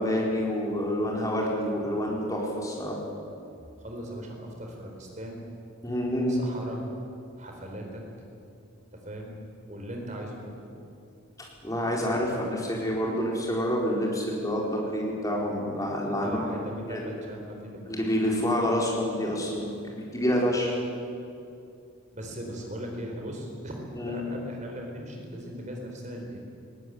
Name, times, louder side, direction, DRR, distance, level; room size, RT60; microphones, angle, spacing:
voice 1, 0.0-3.0 5.8-6.4 11.6-16.4 16.8-17.0 17.9-20.7 23.9-24.2, equal, 15° left, -2 dB, 4.4 m, -28 dB
voice 2, 3.8-5.4 6.3-6.9 7.4-8.0 8.9-9.4 9.7-10.7 12.1-12.2 15.8-18.0 22.1-26.4, equal, 35° right, 1 dB, 4.3 m, -39 dB
20.0 x 17.0 x 9.4 m, 2.5 s
head